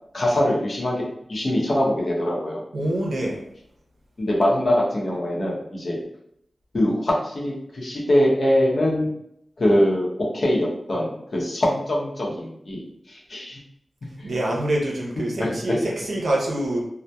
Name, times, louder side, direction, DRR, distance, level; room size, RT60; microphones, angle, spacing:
voice 1, 0.1-1.0 1.3-2.6 4.2-6.0 6.7-9.1 9.6-12.8 13.1-13.6 15.4-15.8, left 1 dB, 65° left, -3 dB, 0.7 m, -22 dB
voice 2, 2.7-3.4 14.2-16.8, right 1 dB, 75° right, -2 dB, 0.6 m, -25 dB
2.7 x 2.1 x 2.2 m, 0.74 s
cardioid pair, 60°, 0 cm